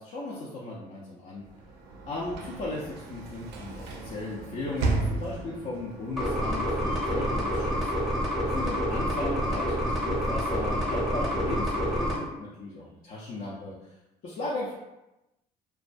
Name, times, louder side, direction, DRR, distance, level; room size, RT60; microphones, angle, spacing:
voice 1, 0.0-1.4 2.1-7.8 8.4-13.7 14.2-14.8, left 2 dB, 55° left, -6 dB, 0.5 m, -36 dB
Sliding door / Slam, 1.4-8.4, right 3 dB, 85° right, 0.4 m, -35 dB
sound 1, 6.2-12.2, equal, ahead, 0.7 m, -28 dB
2.3 x 2.2 x 2.5 m, 0.96 s
cardioid pair, 110°, 17 cm